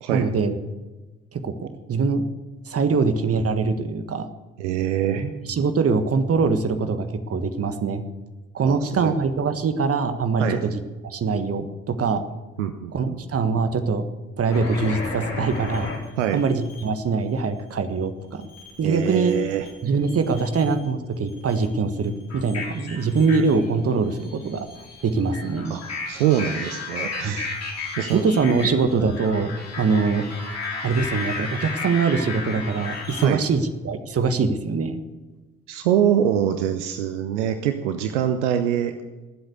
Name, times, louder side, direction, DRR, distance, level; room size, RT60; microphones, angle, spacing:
voice 1, 0.1-0.6 1.3-2.2 2.6-4.3 5.1-8.0 8.5-12.2 12.9-14.0 14.4-15.9 16.3-18.5 18.8-19.3 19.8-24.7 25.0-25.7 27.2-27.4 28.1-29.5 29.8-30.2 30.8-35.0, right 4 dB, 40° right, 9 dB, 1.6 m, -23 dB
voice 2, 4.6-5.2 8.6-9.2 10.4-10.6 12.6-13.2 16.2-16.4 18.8-19.7 25.7-27.6 28.0-28.3 33.2-33.4 35.7-39.0, right 10 dB, 75° right, 9 dB, 0.7 m, -24 dB
sound 1, 14.5-16.9 18.4-19.7 20.0-20.9 21.3-33.3, left 3 dB, 45° left, 4.1 m, -34 dB
20.5 x 8.0 x 6.8 m, 1.2 s
figure-of-eight pair, 40°, 36 cm